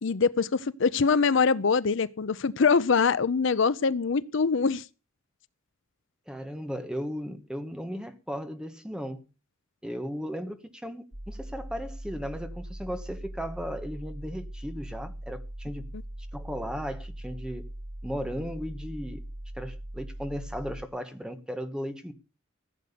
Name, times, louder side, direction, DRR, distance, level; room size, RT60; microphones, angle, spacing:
voice 1, 0.0-4.8, left 5 dB, 65° left, 0.6 m, -24 dB
voice 2, 6.3-9.2 9.8-15.9 16.3-17.7 18.0-19.2 19.6-22.1, equal, 5° right, 1.3 m, -36 dB
sound 1, 11.1-20.9, right 1 dB, 35° right, 1.5 m, -40 dB
15.0 x 7.8 x 6.8 m
head